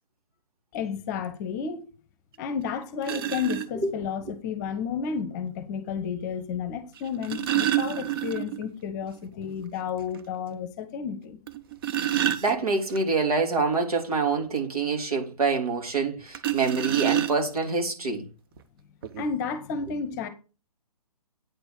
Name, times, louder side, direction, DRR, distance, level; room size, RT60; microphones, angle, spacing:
voice 1, 0.7-1.8 2.4-11.4 19.2-20.3, left 6 dB, 30° left, 0.9 m, -32 dB
sound 1, 2.3-2.4 3.0-3.7 5.1-5.2 7.0-8.7 9.0-9.1 9.5-9.6 10.1-10.2 11.5-13.0 16.3-17.7 18.6-18.7 19.0-19.2, right 12 dB, 35° right, 0.8 m, -28 dB
voice 2, 12.1-18.2, right 4 dB, 65° right, 3.0 m, -26 dB
8.8 x 4.5 x 5.9 m
figure-of-eight pair, 135°, 20 cm